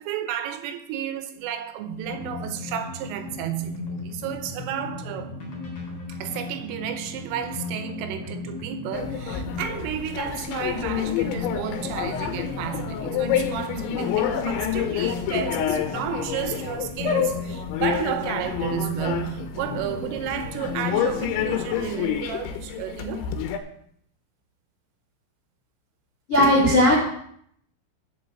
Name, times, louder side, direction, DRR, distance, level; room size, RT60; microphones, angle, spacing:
voice 1, 0.0-5.4 6.1-23.4, right 10 dB, 85° right, 3.4 m, -32 dB
sound 1, 2.0-21.8, left 3 dB, 35° left, 4.2 m, -36 dB
sound 2, 8.9-23.6, left 9 dB, 75° left, 3.1 m, -28 dB
voice 2, 26.3-27.0, left 1 dB, 55° left, 0.8 m, -17 dB
7.6 x 7.3 x 7.6 m
omnidirectional pair, 5.8 m